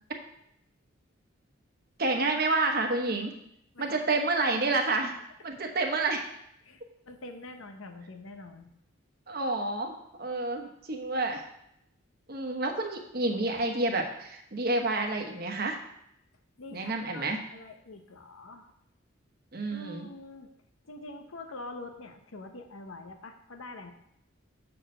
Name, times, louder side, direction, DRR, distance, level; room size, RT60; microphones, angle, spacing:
voice 1, 2.0-3.3 3.8-5.2 5.4-6.3 9.3-11.4 12.3-15.8 16.7-17.4 19.5-20.1, right 2 dB, 45° right, 3 dB, 1.0 m, -29 dB
voice 2, 3.7-4.1 6.6-8.7 16.6-18.7 19.7-20.5 20.8-23.9, left 2 dB, 80° left, 5 dB, 0.8 m, -45 dB
6.7 x 4.3 x 6.5 m, 0.76 s
head